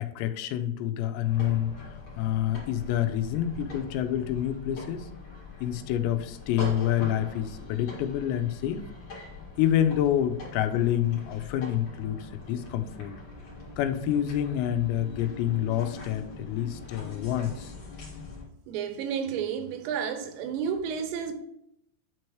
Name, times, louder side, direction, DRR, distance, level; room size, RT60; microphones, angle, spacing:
voice 1, 0.0-1.7 2.2-5.1 5.6-8.9 9.6-13.1 13.8-17.7, left 11 dB, 85° left, 2.8 m, -27 dB
sound 1, 1.2-18.4, left 3 dB, 45° left, 2.1 m, -43 dB
voice 2, 18.7-21.3, right 7 dB, 80° right, 3.0 m, -31 dB
9.1 x 4.6 x 3.1 m
omnidirectional pair, 5.1 m